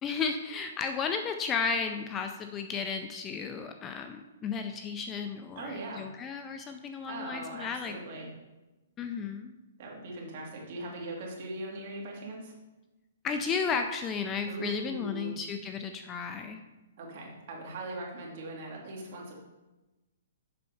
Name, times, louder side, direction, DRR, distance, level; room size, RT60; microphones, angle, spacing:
voice 1, 0.0-7.9 9.0-9.5 13.2-16.6, left 5 dB, 15° left, 6 dB, 0.4 m, -33 dB
voice 2, 5.6-6.0 7.1-8.3 9.8-12.5 14.4-15.3 17.0-19.3, right 2 dB, 45° right, -1 dB, 2.4 m, -40 dB
7.6 x 5.4 x 5.6 m, 1.1 s
hypercardioid pair, 160°, 0 cm